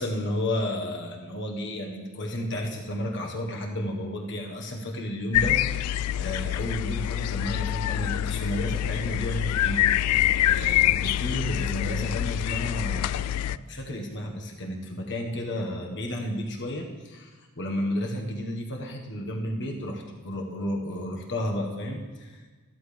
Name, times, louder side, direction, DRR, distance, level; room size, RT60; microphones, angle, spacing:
voice 1, 0.0-22.5, left 1 dB, 55° left, 1 dB, 1.5 m, -32 dB
sound 1, 5.3-13.6, left 13 dB, 80° left, 0.3 m, -26 dB
14.0 x 13.5 x 3.4 m, 1.4 s
head